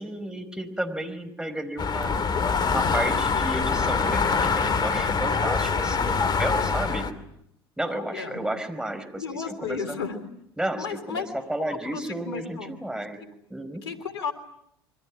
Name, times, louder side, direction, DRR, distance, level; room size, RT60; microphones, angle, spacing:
voice 1, 0.0-7.0 7.8-10.0 10.6-11.2 11.5-13.2 13.5-13.8, right 1 dB, 5° right, 7 dB, 5.0 m, -32 dB
sound 1, 1.8-7.1, left 5 dB, 35° left, 2.5 m, -24 dB
voice 2, 6.7-7.0 7.8-8.4 9.2-10.2 10.8-11.3 11.6-12.8 13.8-14.3, left 6 dB, 80° left, 11 dB, 3.3 m, -35 dB
27.5 x 24.5 x 7.5 m, 0.74 s
hypercardioid pair, 70°, 13 cm